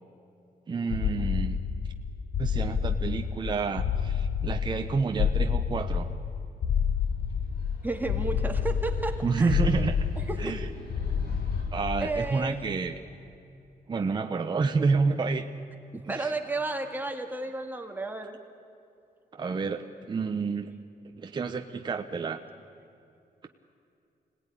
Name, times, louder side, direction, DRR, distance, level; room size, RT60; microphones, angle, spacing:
voice 1, 0.7-1.6 2.4-6.1 9.2-10.0 10.4-10.6 11.7-13.0 13.9-15.5 16.0-16.3 19.3-20.7 21.2-22.4, right 4 dB, 30° right, 5 dB, 0.9 m, -29 dB
sound 1, 0.9-12.3, left 7 dB, 65° left, 1.3 m, -29 dB
sound 2, 6.7-11.6, left 1 dB, 90° left, 5.8 m, -46 dB
voice 2, 7.8-9.6 10.3-10.6 12.0-12.6 15.9-18.4, right 2 dB, 10° right, 4 dB, 2.0 m, -32 dB
26.0 x 18.0 x 10.0 m, 2.5 s
cardioid pair, 135°, 16 cm